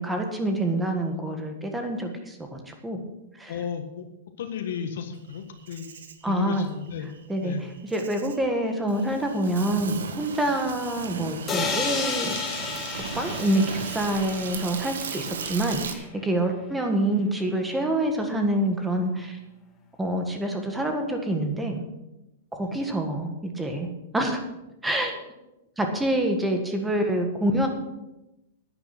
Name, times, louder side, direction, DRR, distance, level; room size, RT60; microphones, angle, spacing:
voice 1, 0.0-3.0 3.4-3.6 6.2-6.7 7.3-12.4 13.1-19.4 20.0-21.8 22.5-24.4 24.8-25.2 25.8-27.7, right 1 dB, 5° right, 4 dB, 1.6 m, -26 dB
voice 2, 3.5-4.1 4.4-7.1 7.4-7.7 22.6-22.8, left 7 dB, 75° left, 5 dB, 1.6 m, -34 dB
Insect, 5.3-15.9, right 6 dB, 90° right, 1.5 m, -36 dB
sound 1, 11.5-15.3, left 5 dB, 15° left, 1.7 m, -32 dB
10.5 x 9.9 x 6.0 m, 0.94 s
supercardioid pair, 160°, 0 cm